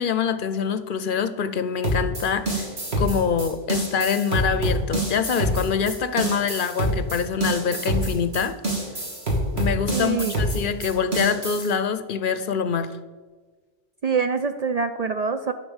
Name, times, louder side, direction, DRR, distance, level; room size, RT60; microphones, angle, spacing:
voice 1, 0.0-2.7 3.0-8.5 9.6-12.9, left 6 dB, 60° left, 11 dB, 0.7 m, -25 dB
sound 1, 1.8-11.7, right 1 dB, 85° right, 2.8 m, -26 dB
voice 2, 9.9-10.3 14.0-15.5, right 5 dB, 50° right, 8 dB, 0.5 m, -25 dB
11.0 x 5.4 x 7.1 m, 1.4 s
omnidirectional pair, 1.1 m